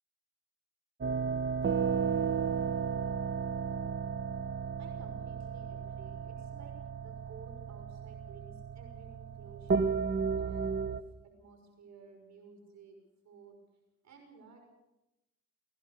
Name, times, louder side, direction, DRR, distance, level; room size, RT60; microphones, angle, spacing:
sound 1, 1.0-11.0, right 6 dB, 40° right, 1.1 m, -34 dB
voice 1, 4.8-10.0 10.4-11.0 11.2-13.0 13.2-13.6 14.0-14.6, right 4 dB, 65° right, 3 dB, 6.1 m, -55 dB
23.0 x 17.0 x 6.8 m, 0.95 s
cardioid pair, 90°, 30 cm